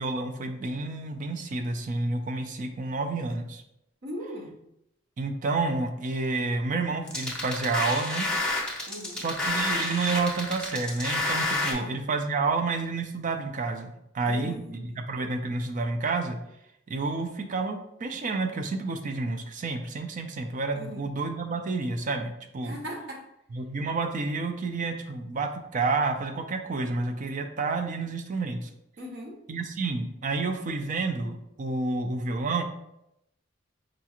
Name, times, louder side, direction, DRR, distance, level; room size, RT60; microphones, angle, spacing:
voice 1, 0.0-3.6 5.2-8.3 9.1-16.4 16.9-22.8 23.5-28.7 29.5-32.6, right 3 dB, 40° right, 5 dB, 0.4 m, -30 dB
voice 2, 4.0-4.6 8.9-9.2 11.7-11.9 14.2-15.0 20.7-21.0 22.6-23.2 29.0-29.4, equal, 60° right, 1 dB, 0.8 m, -39 dB
sound 1, 7.1-11.7, left 2 dB, 5° left, 0.7 m, -29 dB
5.0 x 2.4 x 2.9 m, 0.82 s
head